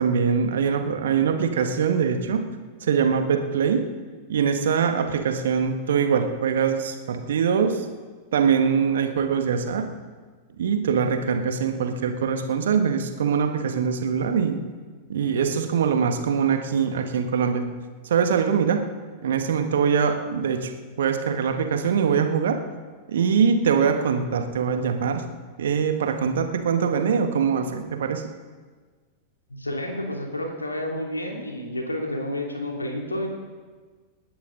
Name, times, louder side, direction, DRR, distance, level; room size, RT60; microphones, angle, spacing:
voice 1, 0.0-2.4 2.8-3.8 4.3-7.8 8.3-9.8 10.6-14.6 15.1-17.6 18.0-18.8 19.2-20.7 21.0-22.6 23.1-25.2 25.6-28.2, right 6 dB, 60° right, 6 dB, 1.6 m, -23 dB
voice 2, 29.5-33.3, left 1 dB, 80° left, 1 dB, 2.8 m, -30 dB
28.0 x 11.0 x 3.9 m, 1.4 s
figure-of-eight pair, 90°, 0 cm